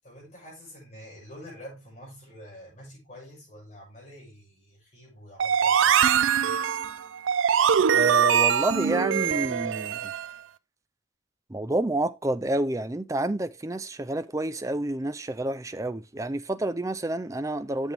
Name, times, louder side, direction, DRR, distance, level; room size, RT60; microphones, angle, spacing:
voice 1, 0.0-6.6, equal, 35° left, 6.3 m, -47 dB
sound 1, 5.4-10.3, right 8 dB, 85° right, 0.4 m, -23 dB
voice 2, 7.9-10.0 11.5-17.9, right 1 dB, 15° right, 0.5 m, -29 dB
8.2 x 7.0 x 3.4 m
head